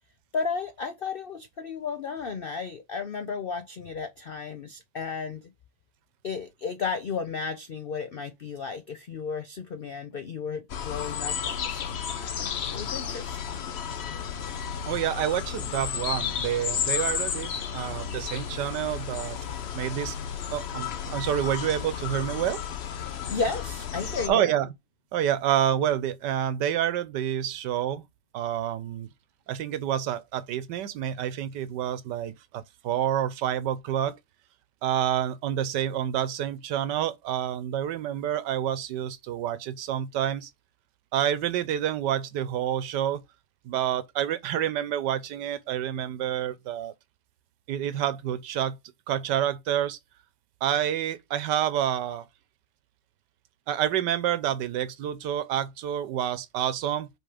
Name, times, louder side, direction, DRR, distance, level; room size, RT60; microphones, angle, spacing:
voice 1, 0.3-5.5 6.2-13.7 23.3-24.5, left 5 dB, 85° left, 0.4 m, -34 dB
sound 1, 10.7-24.3, left 8 dB, 55° left, 0.7 m, -33 dB
voice 2, 14.9-19.4 19.7-20.1 20.5-22.6 24.3-24.7 25.1-28.0 28.3-29.1 29.5-34.2 34.8-40.5 41.1-43.2 43.6-46.9 47.7-48.8 49.1-50.0 50.6-52.3 53.7-57.1, right 10 dB, 85° right, 1.4 m, -28 dB
5.3 x 3.6 x 5.0 m
omnidirectional pair, 1.8 m